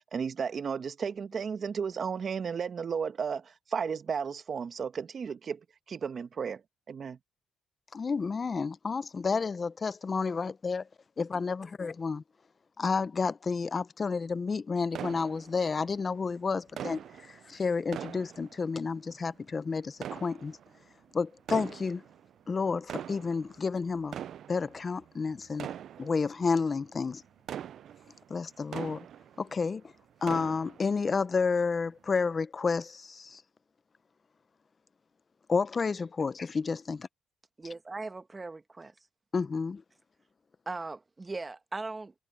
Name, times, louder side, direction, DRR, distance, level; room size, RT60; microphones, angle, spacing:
voice 1, 0.0-5.6 5.9-6.6 6.9-7.2, right 6 dB, 50° right, 1.3 m, -34 dB
voice 2, 7.9-10.8 11.2-12.2 12.8-20.6 21.1-22.0 22.5-24.2 24.5-25.7 26.0-27.2 28.3-29.0 29.4-29.8 30.2-33.4 35.5-37.1 39.3-39.8, left 4 dB, 35° left, 0.7 m, -30 dB
sound 1, 14.9-16.0 16.8-19.1 19.9-20.9 21.4-22.3 22.7-29.7 30.0-31.1 31.5-31.6 32.2-32.4, right 10 dB, 65° right, 0.3 m, -42 dB
voice 3, 37.6-38.9 40.7-42.1, right 3 dB, 25° right, 1.2 m, -39 dB
cardioid pair, 90°, 0 cm